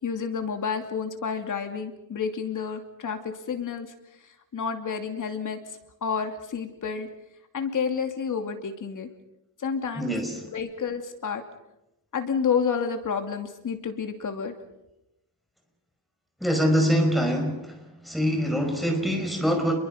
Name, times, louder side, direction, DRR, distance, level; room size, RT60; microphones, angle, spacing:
voice 1, 0.0-3.9 4.5-5.6 6.0-7.1 7.5-9.1 9.6-10.1 10.5-11.4 12.1-14.5, left 6 dB, 55° left, 5 dB, 2.7 m, -29 dB
voice 2, 10.0-10.5 16.4-17.8 18.1-19.7, equal, ahead, 3 dB, 5.2 m, -24 dB
30.0 x 22.5 x 5.2 m, 0.88 s
wide cardioid pair, 155°, 37 cm